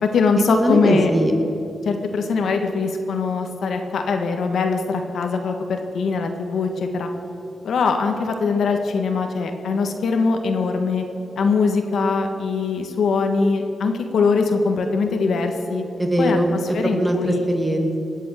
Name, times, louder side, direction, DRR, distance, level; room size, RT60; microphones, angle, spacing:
voice 1, 0.0-1.1 1.8-7.1 7.6-11.0 11.4-15.8 16.2-16.4 16.7-17.5, left 4 dB, 80° left, 5 dB, 1.5 m, -22 dB
voice 2, 0.5-1.3 16.0-18.0, right 1 dB, 15° right, 4 dB, 2.0 m, -21 dB
19.0 x 8.4 x 6.5 m, 3.0 s
cardioid pair, 75°, 0 cm